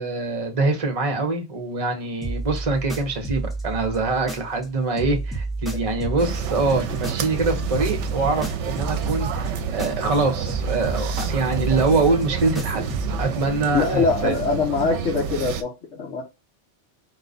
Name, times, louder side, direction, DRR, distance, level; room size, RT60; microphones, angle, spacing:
voice 1, 0.0-12.9 13.2-14.3, right 3 dB, 30° right, 1.0 m, -24 dB
sound 1, 2.2-4.7 5.0-10.2 10.5-13.3, right 3 dB, ahead, 0.8 m, -31 dB
sound 2, 6.2-15.6, right 7 dB, 75° right, 0.9 m, -29 dB
voice 2, 13.7-16.2, left 4 dB, 70° left, 1.4 m, -23 dB
4.7 x 2.2 x 4.0 m
omnidirectional pair, 1.2 m